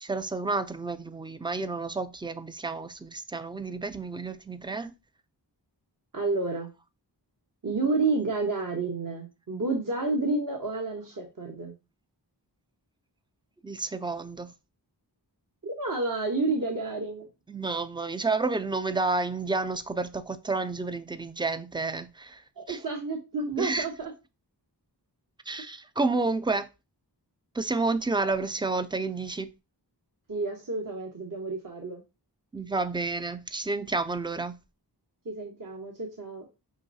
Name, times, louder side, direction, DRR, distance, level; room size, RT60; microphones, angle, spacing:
voice 1, 0.0-4.9 13.6-14.5 17.5-22.4 22.7-22.8 23.6-23.9 25.5-26.7 27.5-29.5 32.5-34.6, right 3 dB, 10° right, 0.4 m, -30 dB
voice 2, 6.1-6.7 7.6-11.7 15.6-17.3 22.6-24.1 30.3-32.0 35.2-36.4, right 3 dB, 50° right, 1.0 m, -30 dB
5.6 x 3.1 x 2.6 m
wide cardioid pair, 45°, 42 cm